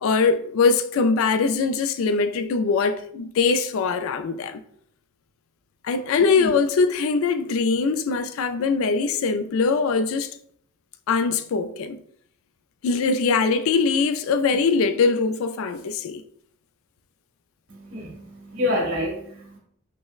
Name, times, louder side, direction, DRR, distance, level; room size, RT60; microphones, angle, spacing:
voice 1, 0.0-4.6 5.8-10.4 11.1-12.0 12.8-16.2, left 4 dB, 70° left, 0.3 m, -22 dB
voice 2, 17.7-19.6, left 1 dB, 70° right, 1.5 m, -28 dB
6.1 x 2.0 x 2.3 m
head